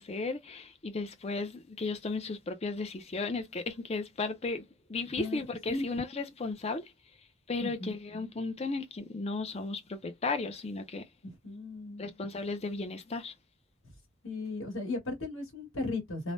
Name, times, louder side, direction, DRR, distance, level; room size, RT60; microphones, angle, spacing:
voice 1, 0.0-4.6 4.9-6.8 7.5-11.0 12.0-13.3, left 3 dB, 30° left, 0.5 m, -35 dB
voice 2, 7.6-8.3 11.2-12.0 14.2-16.3, left 3 dB, 70° left, 1.7 m, -36 dB
3.2 x 2.1 x 2.5 m
head